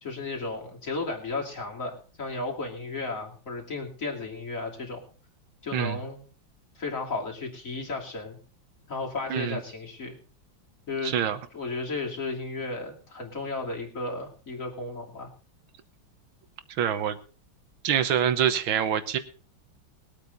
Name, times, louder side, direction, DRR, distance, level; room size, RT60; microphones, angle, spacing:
voice 1, 0.0-5.0 5.6-6.2 6.7-8.4 8.9-10.2 10.9-11.1 11.5-15.3, left 3 dB, 40° left, 0 dB, 3.2 m, -34 dB
voice 2, 11.0-11.4 16.8-17.2 17.8-19.2, right 9 dB, 80° right, 11 dB, 1.9 m, -25 dB
21.5 x 8.5 x 4.1 m, 0.38 s
omnidirectional pair, 2.2 m